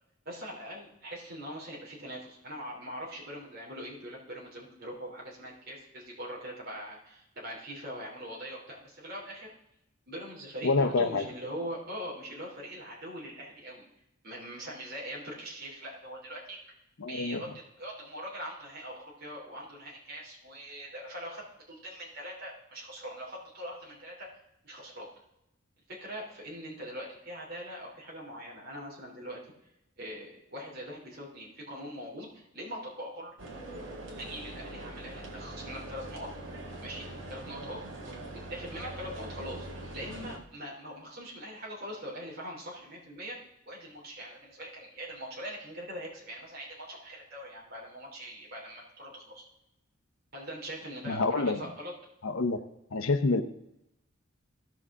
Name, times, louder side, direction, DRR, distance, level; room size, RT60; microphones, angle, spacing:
voice 1, 0.2-9.5 10.1-13.9 14.2-16.6 17.1-17.5 17.8-24.4 24.6-25.1 25.9-29.4 30.0-33.3 34.2-36.3 36.8-38.1 38.5-39.7 39.9-43.4 43.7-49.4 50.3-51.9, equal, 50° right, -4 dB, 3.2 m, -42 dB
voice 2, 10.6-11.2 17.0-17.4 51.1-51.6 52.2-52.6 52.9-53.4, left 3 dB, 90° left, 8 dB, 0.8 m, -27 dB
sound 1, 33.4-40.4, right 1 dB, 80° right, 2.1 m, -42 dB
16.5 x 6.1 x 3.7 m, 0.84 s
head